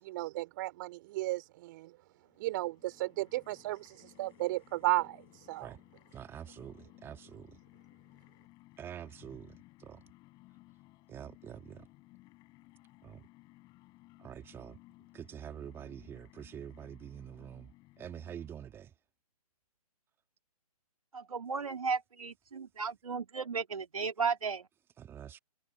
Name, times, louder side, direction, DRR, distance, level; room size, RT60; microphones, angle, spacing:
voice 1, 0.0-1.9 2.4-5.2 5.5-5.7, right 18 dB, 30° right, 3.4 m, -34 dB
sound 1, 2.2-18.9, left 20 dB, 20° left, 7.8 m, -60 dB
voice 2, 6.1-7.6 8.8-10.0 11.1-11.9 13.0-13.2 14.2-14.8 15.1-17.7 18.0-18.9 25.0-25.4, right 9 dB, 10° right, 2.5 m, -46 dB
voice 3, 21.1-24.7, right 5 dB, 65° right, 3.4 m, -35 dB
figure-of-eight pair, 135°, 20 cm